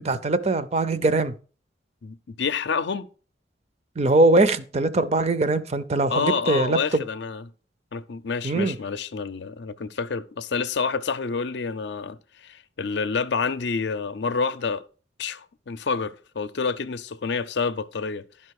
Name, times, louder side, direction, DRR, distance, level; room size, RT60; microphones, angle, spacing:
voice 1, 0.0-1.3 4.0-7.0 8.4-8.8, right 2 dB, 35° right, 0.5 m, -21 dB
voice 2, 2.0-3.1 6.1-7.5 7.9-14.8 15.2-18.2, left 5 dB, 70° left, 0.5 m, -28 dB
11.5 x 5.5 x 4.7 m
head